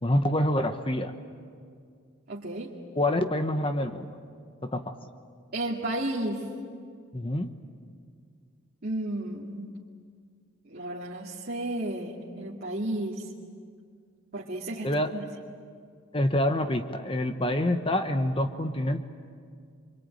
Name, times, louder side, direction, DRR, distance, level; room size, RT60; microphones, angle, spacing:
voice 1, 0.0-1.1 2.9-4.1 4.6-5.0 7.1-7.5 14.8-15.1 16.1-19.0, left 1 dB, 25° left, 7 dB, 1.1 m, -26 dB
voice 2, 2.3-2.7 5.5-6.4 8.8-9.7 10.7-13.3 14.3-15.3, right 1 dB, 50° right, -4 dB, 2.3 m, -33 dB
25.5 x 25.0 x 9.2 m, 2.2 s
head